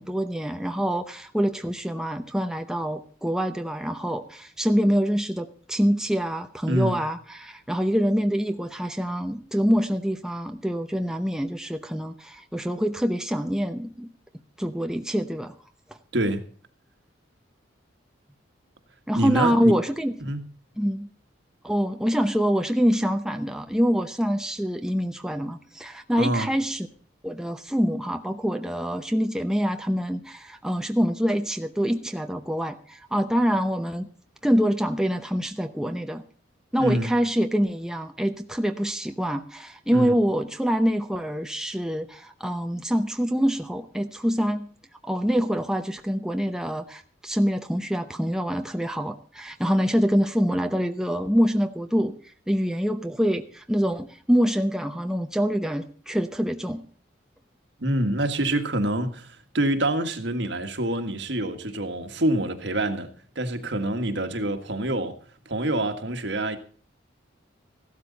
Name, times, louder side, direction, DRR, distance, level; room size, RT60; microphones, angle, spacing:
voice 1, 0.0-14.1 14.6-15.5 19.1-20.1 20.8-21.1 21.6-26.9 27.2-34.1 34.4-36.2 36.7-44.7 45.0-52.1 52.5-56.8, equal, 5° right, 0.8 m, -25 dB
voice 2, 6.7-7.0 16.1-16.4 19.1-19.8 20.2-20.5 26.2-26.5 36.8-37.1 39.9-40.2 57.8-63.1 63.4-65.2 65.5-66.6, right 1 dB, 60° right, 1.7 m, -26 dB
16.0 x 12.5 x 4.1 m
head